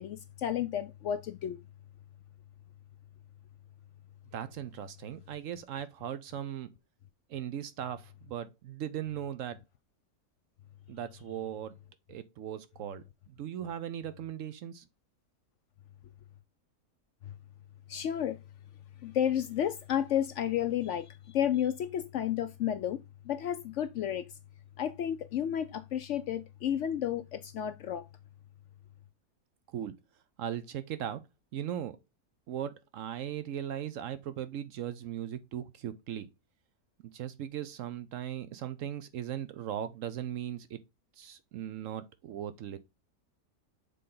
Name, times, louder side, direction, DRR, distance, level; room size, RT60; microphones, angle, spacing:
voice 1, 0.0-1.6 17.2-17.3 17.9-18.4 19.0-23.0 23.2-24.3 24.8-28.1, left 10 dB, 65° left, 0.7 m, -32 dB
voice 2, 4.3-6.7 7.3-9.6 10.9-11.8 12.1-14.8 29.7-29.9 30.4-31.2 31.5-32.0 32.5-36.3 37.0-40.8 41.2-42.8, right 10 dB, 70° right, 0.9 m, -38 dB
6.6 x 3.8 x 3.7 m
omnidirectional pair, 1.6 m